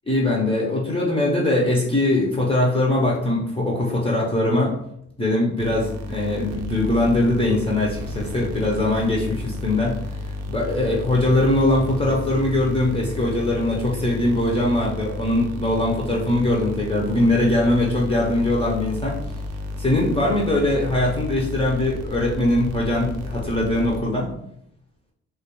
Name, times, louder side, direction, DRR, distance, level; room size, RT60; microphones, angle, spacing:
voice 1, 0.1-4.8 5.2-10.0 10.3-19.2 19.8-24.3, left 1 dB, 20° left, -3 dB, 0.5 m, -21 dB
sound 1, 5.6-24.4, left 1 dB, 60° right, 0.5 m, -32 dB
2.2 x 2.2 x 2.9 m, 0.72 s
cardioid pair, 90°, 30 cm